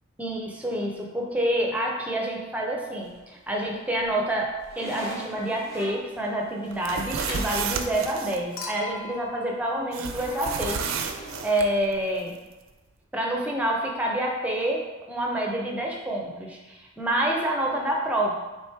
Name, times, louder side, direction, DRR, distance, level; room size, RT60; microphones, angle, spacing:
voice 1, 0.2-12.4 13.1-18.3, right 1 dB, 5° right, -1 dB, 0.5 m, -28 dB
sound 1, 3.0-3.6 4.0-7.6 10.1-12.1, equal, 50° left, 1.0 m, -41 dB
sound 2, 6.7-8.4 9.9-11.7, right 6 dB, 90° right, 0.4 m, -32 dB
Human group actions / Chink clink / Liquid, 8.6-11.0 12.4-12.5, left 2 dB, 80° left, 0.6 m, -41 dB
3.6 x 3.1 x 4.3 m, 1.2 s
head